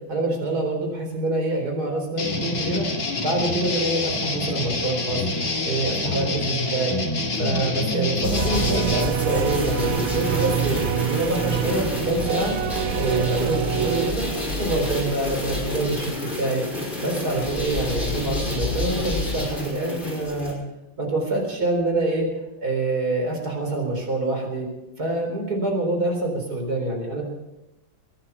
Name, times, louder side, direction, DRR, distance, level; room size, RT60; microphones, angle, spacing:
voice 1, 0.1-2.9 3.2-5.2 5.6-7.0 7.4-12.6 12.9-14.3 14.6-16.6 17.0-20.6 21.0-22.3 22.6-24.7 25.0-27.2, right 2 dB, 50° right, 2 dB, 4.7 m, -26 dB
sound 1, 2.2-9.0, left 2 dB, 50° left, 2.9 m, -26 dB
sound 2, 8.2-20.5, left 2 dB, 25° left, 5.3 m, -29 dB
sound 3, 8.4-14.1, right 11 dB, 80° right, 1.4 m, -27 dB
23.0 x 9.9 x 5.7 m, 0.95 s
omnidirectional pair, 2.1 m